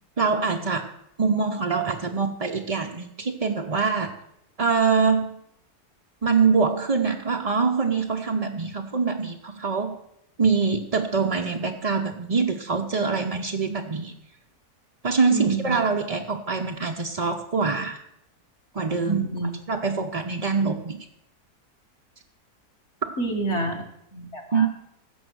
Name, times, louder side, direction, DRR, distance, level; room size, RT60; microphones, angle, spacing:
voice 1, 0.2-0.9 1.2-4.1 4.6-5.4 6.2-10.0 10.4-14.1 15.0-18.0 18.7-19.3 19.7-21.0 23.0-23.1 24.5-24.7, right 5 dB, 45° right, 2 dB, 0.5 m, -24 dB
voice 2, 15.3-15.8 19.1-19.5 23.2-23.8 24.1-24.7, right 3 dB, 50° left, 0 dB, 1.9 m, -27 dB
15.5 x 6.2 x 6.2 m, 0.76 s
omnidirectional pair, 1.6 m